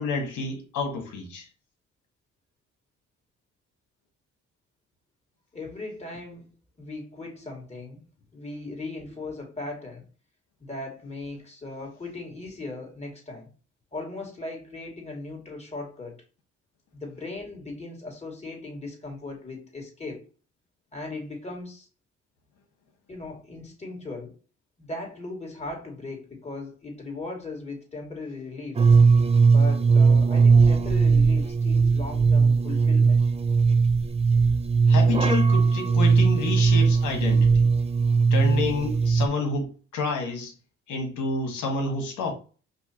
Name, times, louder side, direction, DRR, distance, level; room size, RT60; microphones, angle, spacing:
voice 1, 0.0-1.5 34.9-37.7 38.3-40.5 40.9-42.3, left 3 dB, 80° left, 1.7 m, -29 dB
voice 2, 5.5-8.0 8.3-10.1 10.7-13.5 13.9-16.2 16.9-20.3 20.9-21.9 23.1-24.4 24.8-28.9 29.5-33.2, left 2 dB, 20° left, 2.3 m, -38 dB
sound 1, 28.8-39.3, right 4 dB, 20° right, 0.5 m, -19 dB
5.4 x 2.8 x 2.9 m
cardioid pair, 90°, 30 cm